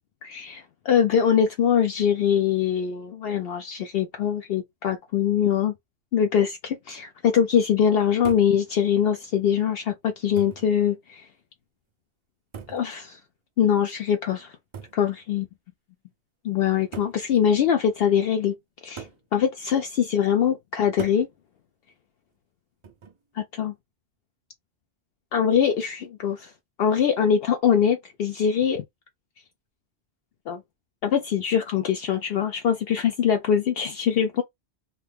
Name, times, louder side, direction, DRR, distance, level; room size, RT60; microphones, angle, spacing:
voice 1, 0.2-5.7 6.1-11.3 12.7-13.2 13.6-14.5 14.9-15.4 16.4-18.5 18.8-19.1 19.3-21.3 23.3-23.7 25.3-26.5 26.8-28.8 30.5-30.6 31.0-34.4, left 8 dB, 70° left, 0.7 m, -23 dB
sound 1, 8.2-8.6 9.6-9.7 10.4-10.7 12.5-12.9 14.7-15.0 16.1-16.2 16.9-17.2 19.0-19.3 21.0-21.3 22.8-23.2, right 6 dB, 45° right, 0.4 m, -39 dB
2.7 x 2.5 x 3.3 m
omnidirectional pair, 1.1 m